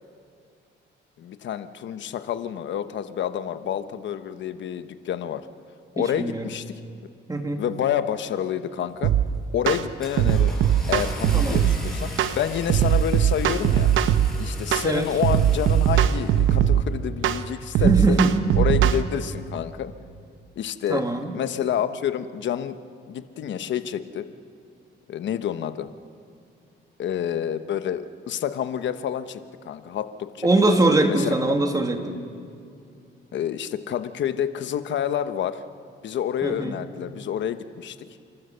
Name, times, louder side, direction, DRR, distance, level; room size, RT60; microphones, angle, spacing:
voice 1, 1.2-5.5 5.9-6.6 7.6-9.1 9.5-10.6 10.9-13.9 14.4-18.2 18.6-19.9 20.6-21.0 21.3-22.8 23.1-24.3 25.1-25.9 27.0-30.5 31.1-31.3 33.3-35.6 36.0-38.0, left 9 dB, 65° left, 10 dB, 1.1 m, -28 dB
voice 2, 6.0-6.4 7.3-7.6 11.3-11.7 14.8-15.1 17.8-18.4 20.9-21.3 30.4-32.2 36.4-36.8, right 2 dB, 20° right, 4 dB, 2.4 m, -22 dB
Car / Engine starting, 8.9-9.2 9.6-16.6, left 1 dB, 5° left, 6.3 m, -37 dB
sound 1, 9.0-9.2 9.7-9.8 10.2-11.8 12.2-12.4 12.7-14.3 14.7-14.9 15.2-16.8 17.2-17.4 17.7-19.0, right 10 dB, 85° right, 0.9 m, -20 dB
30.0 x 13.5 x 6.9 m, 2.4 s
cardioid pair, 90°, 20 cm